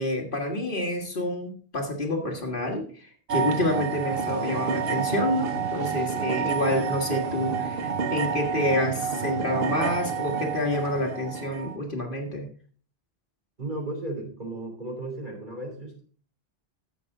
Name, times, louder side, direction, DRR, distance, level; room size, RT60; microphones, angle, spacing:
voice 1, 0.0-12.5, left 1 dB, 55° left, 2 dB, 1.8 m, -28 dB
sound 1, 3.3-11.8, right 6 dB, 65° right, 1.1 m, -29 dB
voice 2, 13.6-16.0, right 2 dB, 45° right, 1 dB, 3.3 m, -35 dB
11.0 x 7.9 x 3.7 m, 0.43 s
omnidirectional pair, 1.1 m